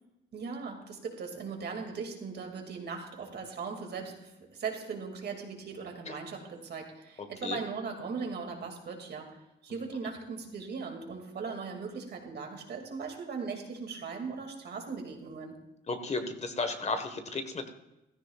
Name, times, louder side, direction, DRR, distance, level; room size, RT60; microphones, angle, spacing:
voice 1, 0.3-15.6, right 5 dB, 55° right, 2 dB, 2.5 m, -39 dB
voice 2, 15.9-17.7, left 3 dB, 35° left, 7 dB, 1.4 m, -33 dB
15.5 x 13.5 x 2.4 m, 0.94 s
cardioid pair, 90°, 20 cm